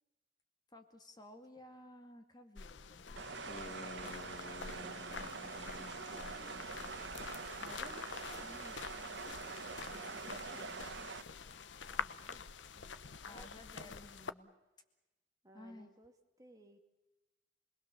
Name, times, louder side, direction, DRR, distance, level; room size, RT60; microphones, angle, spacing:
voice 1, 0.7-3.2 7.6-9.2 9.9-11.1 13.2-14.5 15.5-15.9, left 1 dB, 20° left, 6 dB, 2.2 m, -56 dB
sound 1, 2.6-14.3, left 5 dB, 85° left, 0.9 m, -47 dB
sound 2, 3.1-12.4, left 2 dB, 40° left, 1.1 m, -55 dB
sound 3, 3.2-11.2, right 4 dB, 75° right, 1.3 m, -45 dB
voice 2, 4.7-7.1 10.1-10.9 11.9-12.5 12.7-13.0 13.2-13.5 13.8-14.3 15.4-16.1 16.4-16.8, right 1 dB, 20° right, 5 dB, 2.2 m, -62 dB
29.5 x 20.5 x 7.0 m, 1.0 s
head